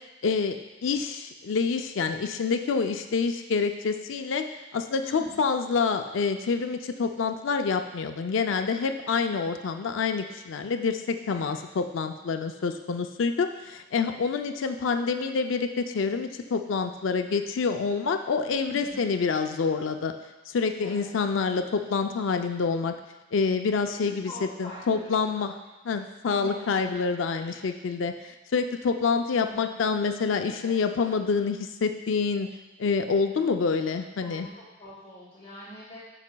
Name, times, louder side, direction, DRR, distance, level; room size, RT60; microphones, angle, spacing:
voice 1, 0.2-0.6 0.8-4.4 4.7-20.1 20.5-23.0 23.3-24.3 24.6-25.5 25.8-32.5 32.8-34.5, left 5 dB, 75° left, 7 dB, 0.4 m, -27 dB
voice 2, 5.0-5.5 11.3-11.6 18.6-19.0 20.8-21.1 24.0-25.3 25.9-26.0 26.3-26.7 27.3-27.7 29.3-29.7 30.5-30.8 34.2-36.0, equal, 30° left, -7 dB, 1.2 m, -45 dB
12.5 x 4.9 x 2.2 m, 1.1 s
head